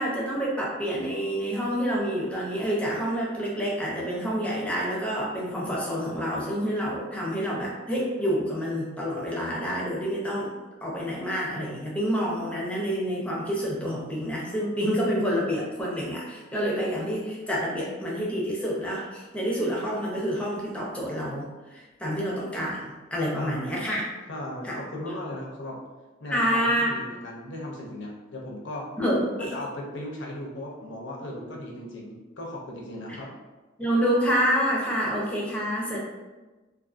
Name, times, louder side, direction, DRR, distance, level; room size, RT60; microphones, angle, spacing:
voice 1, 0.0-10.5 10.8-24.0 24.6-24.8 26.3-26.9 29.0-29.5 33.8-36.0, equal, 5° left, -4 dB, 0.6 m, -28 dB
voice 2, 23.3-23.8 24.3-25.8 26.2-28.9 29.4-33.3, left 1 dB, 65° left, -1 dB, 0.6 m, -37 dB
2.5 x 2.5 x 2.5 m, 1.2 s
head